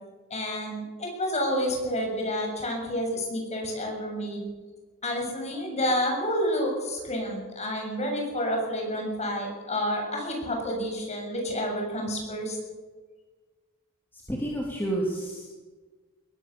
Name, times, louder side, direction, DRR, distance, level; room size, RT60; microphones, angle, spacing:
voice 1, 0.3-4.5 5.0-12.6, equal, 30° left, 1 dB, 7.2 m, -29 dB
voice 2, 14.1-15.5, right 1 dB, 10° left, -3 dB, 3.3 m, -30 dB
21.5 x 18.0 x 7.1 m, 1.3 s
head